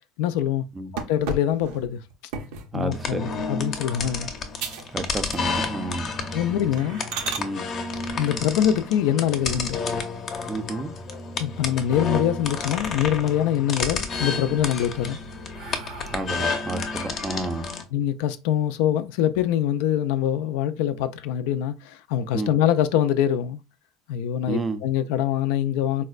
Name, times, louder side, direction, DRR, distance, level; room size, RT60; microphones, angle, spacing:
voice 1, 0.2-0.6 1.1-2.0 2.7-4.3 6.3-7.0 8.2-9.8 11.4-15.2 17.9-23.6 24.1-26.0, left 10 dB, 80° left, 0.3 m, -24 dB
sound 1, 1.0-2.8 3.3-3.6 4.1-4.2 4.6-4.9 5.2-5.8 6.1-6.3 6.8-7.5 9.5-10.2 10.6-10.7 11.1-11.2 11.5-12.3 12.7-13.3 13.7-14.3 14.8-16.5, right 5 dB, 80° right, 0.5 m, -36 dB
voice 2, 2.7-3.3 4.9-6.1 7.4-7.6 10.5-10.9 16.1-17.7 22.3-22.5 24.5-24.8, right 2 dB, 20° right, 0.4 m, -30 dB
sound 2, 2.9-17.8, left 4 dB, 45° left, 0.6 m, -31 dB
4.1 x 2.1 x 2.3 m
supercardioid pair, 115°, 0 cm